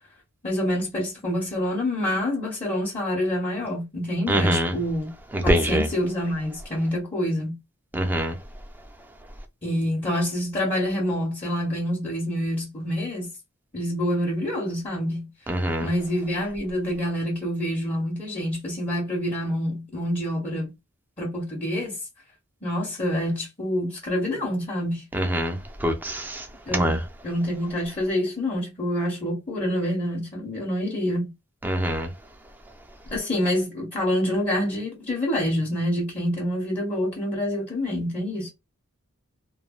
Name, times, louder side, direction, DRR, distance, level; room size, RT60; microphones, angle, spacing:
voice 1, 0.4-5.1 5.4-7.6 9.6-13.3 13.7-15.3 15.8-20.7 21.2-22.0 22.6-25.0 26.7-31.3 33.1-38.5, equal, 30° left, 0.9 m, -27 dB
voice 2, 4.3-4.7 5.3-5.9 7.9-8.3 15.5-15.9 25.1-25.6 25.8-26.4 26.7-27.0 31.6-32.1, equal, 10° right, 0.5 m, -23 dB
3.1 x 2.2 x 2.3 m
head